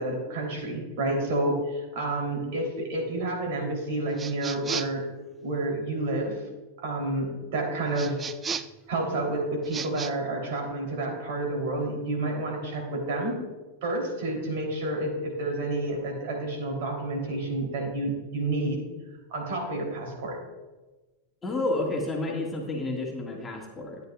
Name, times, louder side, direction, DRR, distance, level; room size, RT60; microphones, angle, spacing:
voice 1, 0.0-5.0 5.4-6.4 6.8-8.2 8.9-13.4 13.8-18.8 19.3-20.4, right 2 dB, 50° right, 0 dB, 3.3 m, -29 dB
sound 1, 4.2-5.1 7.9-8.8 9.6-10.1, right 6 dB, 20° right, 0.4 m, -34 dB
voice 2, 21.4-24.0, left 2 dB, 15° left, -1 dB, 1.9 m, -30 dB
13.0 x 9.4 x 2.4 m, 1.2 s
figure-of-eight pair, 90°, 0 cm